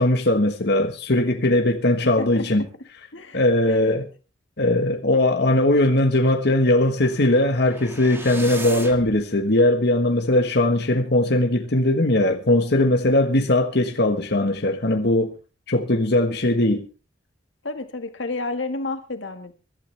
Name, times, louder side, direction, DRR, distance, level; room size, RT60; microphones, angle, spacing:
voice 1, 0.0-2.6 3.3-4.0 4.6-15.3 15.7-16.9, left 1 dB, 60° left, 1.4 m, -20 dB
voice 2, 2.0-2.4 3.1-4.0 17.6-19.5, left 3 dB, 90° left, 1.8 m, -31 dB
sound 1, 7.0-9.2, right 2 dB, 15° right, 1.9 m, -37 dB
24.0 x 12.0 x 3.4 m
head